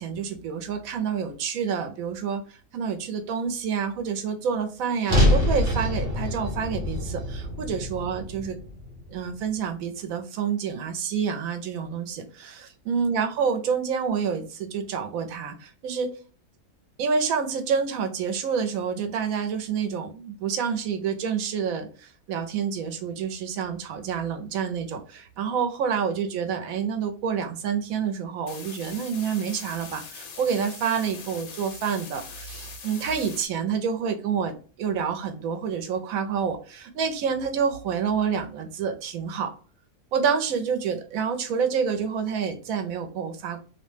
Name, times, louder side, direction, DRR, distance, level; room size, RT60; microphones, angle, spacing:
voice 1, 0.0-8.6 9.1-16.2 17.0-39.5 40.1-43.6, right 6 dB, 75° right, 6 dB, 1.0 m, -28 dB
sound 1, 5.1-9.3, left 1 dB, 45° right, 1.1 m, -25 dB
sound 2, 28.5-33.5, left 6 dB, 80° left, 1.1 m, -42 dB
2.7 x 2.1 x 3.1 m, 0.39 s
omnidirectional pair, 1.5 m